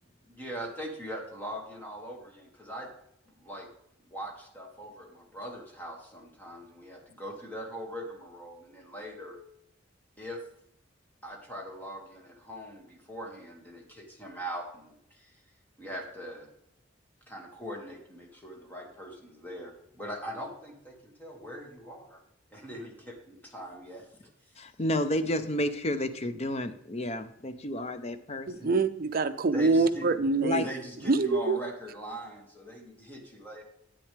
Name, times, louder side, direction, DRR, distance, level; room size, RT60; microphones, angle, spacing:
voice 1, 0.3-2.9 3.3-3.7 4.0-9.4 10.2-10.4 11.2-15.4 15.8-16.5 17.3-22.2 22.5-24.3 29.5-30.1 30.6-33.6, equal, 10° left, 0 dB, 1.9 m, -41 dB
voice 2, 24.6-28.7 30.4-30.7, left 1 dB, 35° left, 10 dB, 0.6 m, -31 dB
voice 3, 28.5-30.7 31.0-31.6, right 3 dB, 50° right, 11 dB, 0.5 m, -25 dB
10.0 x 8.6 x 3.3 m, 0.75 s
head